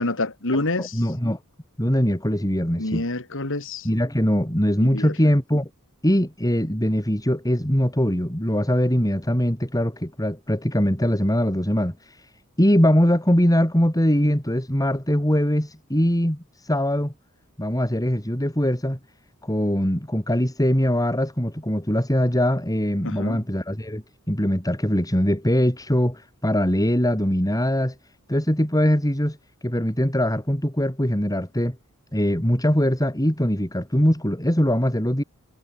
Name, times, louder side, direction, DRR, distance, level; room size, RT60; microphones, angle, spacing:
voice 1, 0.0-1.0 2.8-3.9 4.8-5.1 23.0-23.4, left 2 dB, 60° left, 3.2 m, -27 dB
voice 2, 0.8-1.4 1.8-3.0 3.8-5.7 6.0-11.9 12.6-17.1 17.6-19.0 19.4-27.9 28.3-29.4 29.6-31.8 32.1-35.2, equal, 15° left, 5.3 m, -22 dB
head